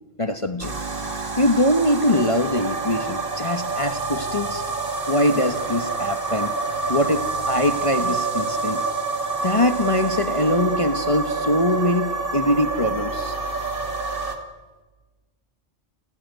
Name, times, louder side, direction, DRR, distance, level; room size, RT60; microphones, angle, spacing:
voice 1, 0.2-0.7 1.4-4.6 5.1-6.6 6.9-8.8 9.4-13.4, left 1 dB, 30° left, 7 dB, 1.2 m, -22 dB
sound 1, 0.6-14.4, right 3 dB, 55° right, 2.4 m, -27 dB
29.5 x 13.5 x 9.4 m, 1.3 s
omnidirectional pair, 1.1 m